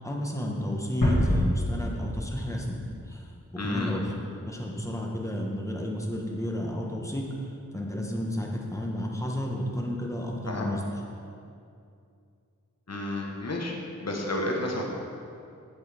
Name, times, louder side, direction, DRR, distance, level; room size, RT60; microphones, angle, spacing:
voice 1, 0.0-2.8 3.1-3.3 3.6-4.1 4.5-10.8, equal, 10° left, -1 dB, 1.3 m, -32 dB
sound 1, 1.0-3.9, left 1 dB, 80° left, 1.8 m, -27 dB
voice 2, 3.6-3.9 10.5-10.7 12.9-14.8, left 1 dB, 55° left, 0 dB, 1.2 m, -31 dB
8.4 x 8.1 x 3.5 m, 2.4 s
wide cardioid pair, 60°, 32 cm